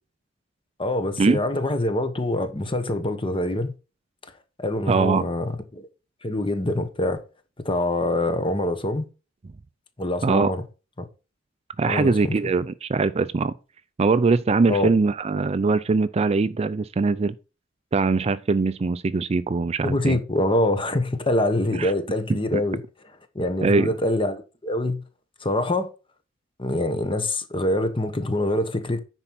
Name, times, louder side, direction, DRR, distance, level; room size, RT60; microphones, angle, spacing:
voice 1, 0.8-3.7 4.6-5.9 6.2-7.2 7.6-9.0 10.0-10.6 11.8-12.5 14.7-14.9 19.8-22.8 23.3-25.0 25.4-25.9 26.6-29.0, left 1 dB, 25° left, 1.2 m, -25 dB
voice 2, 4.9-5.3 10.2-10.5 11.8-13.5 14.0-17.3 17.9-20.2 21.7-21.9 22.3-22.4 23.6-23.9, right 4 dB, 30° right, 0.4 m, -22 dB
10.0 x 4.5 x 5.8 m
head